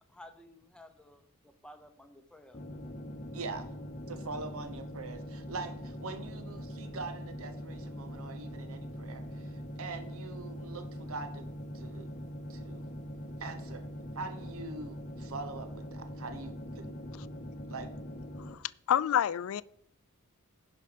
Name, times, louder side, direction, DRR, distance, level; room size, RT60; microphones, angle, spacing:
voice 1, 0.1-2.6, left 1 dB, 5° left, 0.8 m, -54 dB
sound 1, 2.5-18.5, equal, 35° left, 0.8 m, -42 dB
voice 2, 3.3-3.7 4.1-9.2 9.5-11.5 11.7-12.1 12.5-12.8 13.4-13.9 14.1-16.9 17.7-17.9, right 3 dB, 65° right, 0.9 m, -43 dB
voice 3, 18.9-19.6, left 9 dB, 65° left, 0.3 m, -27 dB
11.0 x 5.2 x 5.1 m
head